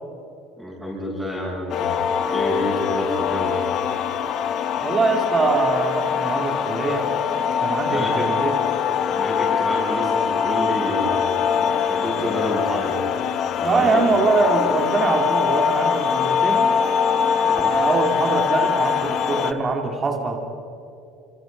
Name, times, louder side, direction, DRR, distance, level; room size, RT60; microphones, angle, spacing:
voice 1, 0.6-3.6 7.9-8.3 9.1-11.5 11.9-13.2 13.6-14.0 17.4-17.7, equal, ahead, -9 dB, 6.8 m, -29 dB
sound 1, 1.7-19.5, left 7 dB, 45° left, 1.2 m, -23 dB
voice 2, 4.8-7.1 7.6-8.5 13.6-16.6 17.6-20.4, right 3 dB, 25° right, 2 dB, 2.5 m, -23 dB
29.0 x 27.0 x 5.3 m, 2.7 s
cardioid pair, 150°, 0 cm